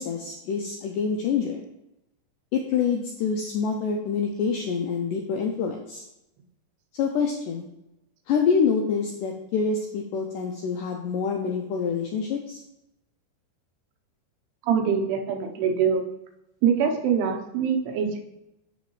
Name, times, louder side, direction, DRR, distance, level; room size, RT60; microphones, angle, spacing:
voice 1, 0.0-1.6 2.5-6.0 7.0-7.7 8.3-12.6, left 6 dB, 85° left, 2 dB, 1.8 m, -26 dB
voice 2, 14.7-16.0 16.6-18.2, right 7 dB, 90° right, 3 dB, 3.0 m, -24 dB
7.6 x 6.9 x 3.2 m, 0.88 s
omnidirectional pair, 4.5 m